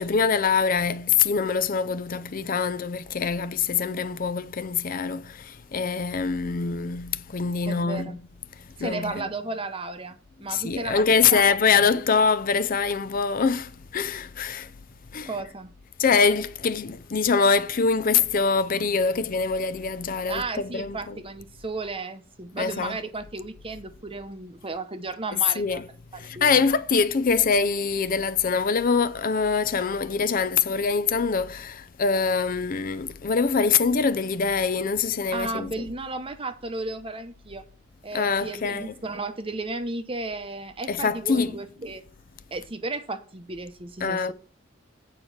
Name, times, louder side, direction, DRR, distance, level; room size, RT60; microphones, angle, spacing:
voice 1, 0.0-8.2 8.8-9.2 10.5-14.7 15.1-15.3 16.0-21.2 22.6-23.0 25.6-25.8 26.2-35.9 38.1-38.9 40.9-41.5 44.0-44.3, left 5 dB, 45° left, 0.5 m, -24 dB
voice 2, 7.7-8.2 8.8-11.4 11.8-12.0 15.2-15.7 20.3-25.8 26.1-26.7 35.3-37.6 38.0-42.0 42.5-44.3, right 3 dB, 30° right, 0.8 m, -34 dB
8.3 x 4.6 x 7.0 m
head